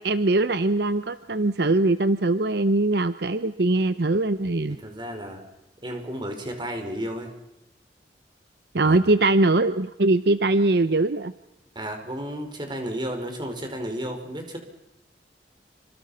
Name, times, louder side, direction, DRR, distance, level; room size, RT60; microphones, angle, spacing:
voice 1, 0.0-4.8 8.7-11.3, right 2 dB, 65° right, 12 dB, 0.8 m, -21 dB
voice 2, 4.7-5.4 5.8-7.3 8.8-9.0 11.7-14.6, equal, 25° right, 4 dB, 5.1 m, -33 dB
28.5 x 25.5 x 5.7 m, 0.91 s
head